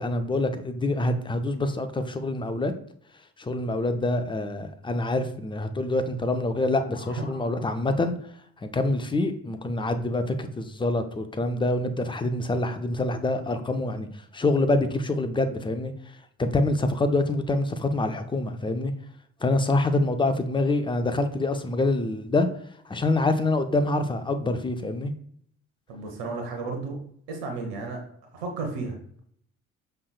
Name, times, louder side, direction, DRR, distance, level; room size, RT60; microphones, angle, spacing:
voice 1, 0.0-2.7 3.4-8.1 8.6-14.1 14.3-15.9 16.4-18.9 19.4-22.5 22.8-25.1, left 2 dB, 15° left, 8 dB, 0.5 m, -26 dB
sound 1, 6.4-8.2, left 2 dB, 30° left, 1.1 m, -47 dB
voice 2, 25.9-27.0 27.3-28.0 28.3-29.2, right 3 dB, 75° right, 2 dB, 1.0 m, -33 dB
5.3 x 3.3 x 2.2 m, 0.63 s
hypercardioid pair, 45°, 39 cm